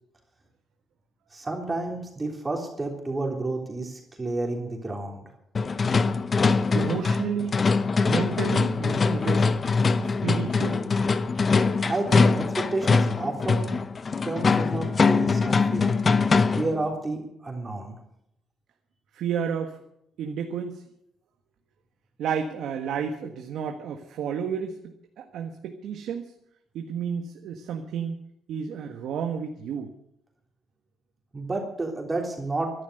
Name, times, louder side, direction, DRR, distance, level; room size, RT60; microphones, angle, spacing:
voice 1, 1.3-5.3 11.9-13.7 14.2-16.0 16.6-18.0 31.3-32.7, right 2 dB, 25° right, 1 dB, 3.5 m, -30 dB
sound 1, 5.5-16.8, left 4 dB, 40° left, 0.8 m, -23 dB
voice 2, 6.7-7.6 8.0-9.5 10.0-10.9 19.1-19.8 20.2-20.8 22.2-26.3 26.7-28.2 28.5-29.9, right 7 dB, 80° right, 4 dB, 1.5 m, -31 dB
14.0 x 11.5 x 7.9 m, 0.76 s
cardioid pair, 90°, 0 cm